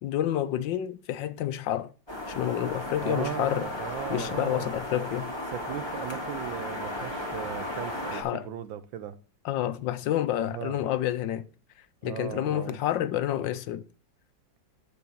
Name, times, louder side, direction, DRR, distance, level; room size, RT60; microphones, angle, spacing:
voice 1, 0.0-1.9 2.3-3.7 4.1-5.3 8.1-8.5 9.4-11.5 12.0-13.8, left 12 dB, 75° left, 1.3 m, -29 dB
sound 1, 2.1-8.2, left 1 dB, 15° left, 2.3 m, -35 dB
voice 2, 3.0-4.7 5.5-9.2 10.5-10.8 12.0-12.8, right 10 dB, 75° right, 1.5 m, -37 dB
12.0 x 4.2 x 6.9 m
omnidirectional pair, 2.2 m